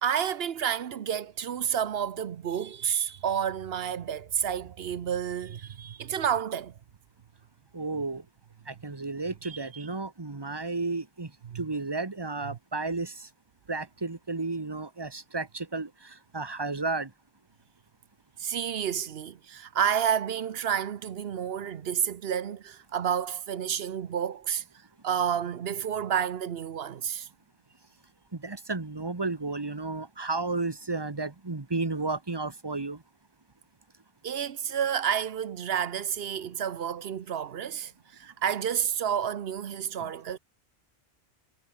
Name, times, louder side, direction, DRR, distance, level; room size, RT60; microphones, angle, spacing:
voice 1, 0.0-6.7 9.4-9.9 11.4-11.6 12.4-12.6 18.4-24.6 25.0-27.3 34.2-40.4, right 8 dB, 70° right, 1.0 m, -30 dB
voice 2, 7.7-8.2 8.7-11.3 11.5-13.3 13.7-17.1 28.3-33.0, right 3 dB, 25° right, 1.3 m, -33 dB
omnidirectional pair, 1.1 m